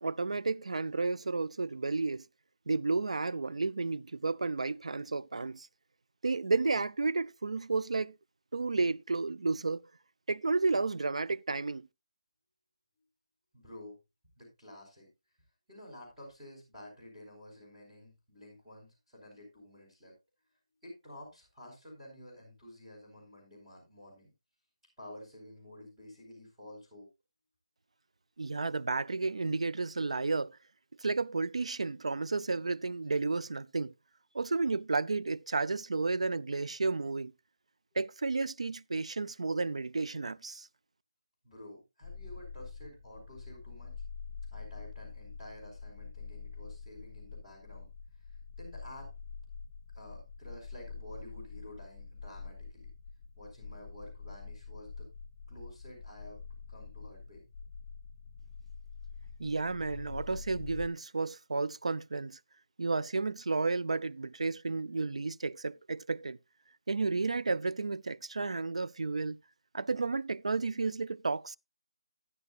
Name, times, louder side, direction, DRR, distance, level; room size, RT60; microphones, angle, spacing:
voice 1, 0.0-2.2 2.7-5.7 6.2-8.2 8.5-9.9 10.3-11.9 28.4-30.6 31.0-33.9 34.3-37.3 38.0-40.7 59.4-62.4 62.8-66.4 66.9-69.4 69.7-71.6, right 3 dB, 85° right, 0.4 m, -32 dB
voice 2, 13.5-14.0 14.4-15.1 15.7-20.1 20.8-24.3 25.0-27.1 41.4-43.9 44.5-47.9 48.2-49.1 49.9-52.9 53.4-55.1 55.5-56.4 56.7-57.4, left 1 dB, 10° right, 4.5 m, -51 dB
sound 1, 42.0-60.9, left 5 dB, 15° left, 5.7 m, -46 dB
13.0 x 9.9 x 2.4 m
hypercardioid pair, 170°, 3 cm